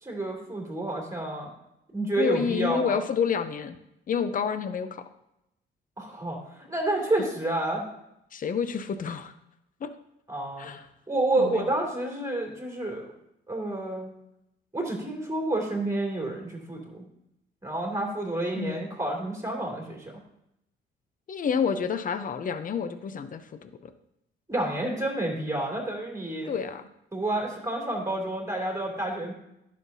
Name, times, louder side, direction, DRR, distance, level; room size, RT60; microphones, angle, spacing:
voice 1, 0.0-1.5 1.9-3.0 6.0-7.8 10.3-10.7 11.1-13.1 13.5-14.1 14.7-17.0 17.6-20.1 24.5-26.5 27.1-29.3, right 2 dB, 15° right, -1 dB, 2.7 m, -29 dB
voice 2, 2.2-3.8 4.1-5.0 8.3-9.3 9.8-9.9 10.6-10.8 11.4-11.7 18.5-18.8 21.3-23.9 26.4-26.9, left 6 dB, 45° left, 10 dB, 0.7 m, -29 dB
11.0 x 6.5 x 2.8 m, 0.83 s
cardioid pair, 90°, 20 cm